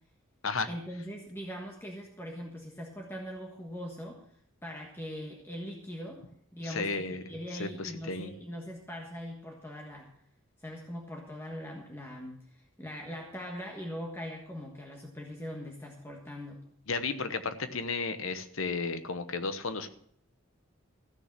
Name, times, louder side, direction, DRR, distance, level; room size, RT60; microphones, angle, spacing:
voice 1, 0.7-4.2 4.6-6.2 6.5-10.1 10.6-16.6, equal, 10° left, 0 dB, 1.5 m, -41 dB
voice 2, 6.6-7.2 7.6-8.3 16.9-19.9, left 4 dB, 80° left, 11 dB, 1.1 m, -33 dB
14.5 x 6.6 x 7.5 m, 0.67 s
head